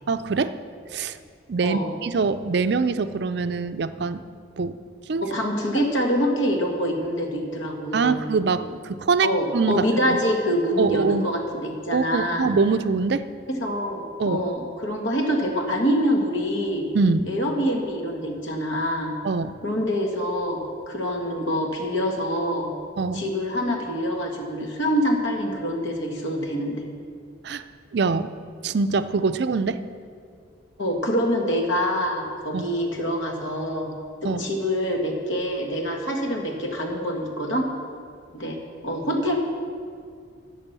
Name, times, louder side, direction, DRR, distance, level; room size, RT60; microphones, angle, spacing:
voice 1, 0.1-0.6 0.9-1.2 1.5-4.2 4.6-4.8 5.1-5.3 7.9-9.8 10.8-11.2 11.9-13.3 14.2-14.4 16.9-17.3 19.2-19.6 23.0-23.2 27.4-27.6 27.9-28.3 28.6-29.8 32.5-32.6 34.2-34.4, right 4 dB, 55° right, 12 dB, 0.4 m, -23 dB
voice 2, 5.2-8.2 9.2-12.5 13.5-16.9 17.3-19.2 19.6-20.6 20.9-22.7 23.1-26.9 30.8-33.9 34.2-37.7 38.3-38.6 38.8-39.4, equal, 80° left, 1 dB, 1.7 m, -25 dB
11.5 x 7.5 x 6.8 m, 2.2 s
head